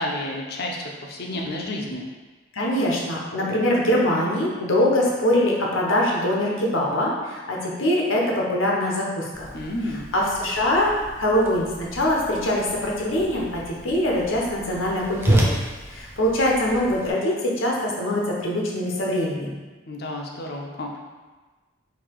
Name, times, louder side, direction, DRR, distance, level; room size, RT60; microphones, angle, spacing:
voice 1, 0.0-2.1 9.5-10.0 19.9-21.0, left 1 dB, 50° left, 0 dB, 0.6 m, -30 dB
voice 2, 2.5-9.5 10.1-10.9 11.2-15.5 15.9-19.6, left 1 dB, 80° left, -2 dB, 0.9 m, -23 dB
Whoosh swoosh swish, 9.3-17.1, right 1 dB, 10° right, 0.4 m, -30 dB
4.0 x 2.8 x 4.6 m, 1.3 s
head